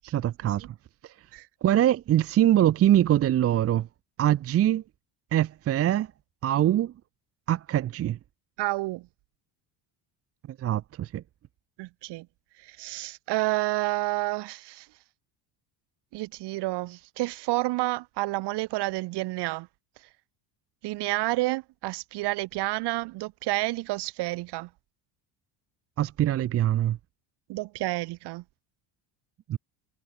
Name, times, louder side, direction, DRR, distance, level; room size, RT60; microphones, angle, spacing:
voice 1, 0.1-0.7 1.0-1.1 1.6-3.9 4.2-4.8 5.3-6.1 6.4-6.9 7.5-8.2 10.6-11.2 26.0-27.0 29.5-29.6, right 12 dB, 30° right, 0.9 m, -23 dB
voice 2, 8.6-9.1 11.8-12.3 12.6-14.9 16.1-19.7 20.8-24.7 27.5-28.4, right 20 dB, 60° right, 4.0 m, -30 dB
cardioid pair, 175°, 45 cm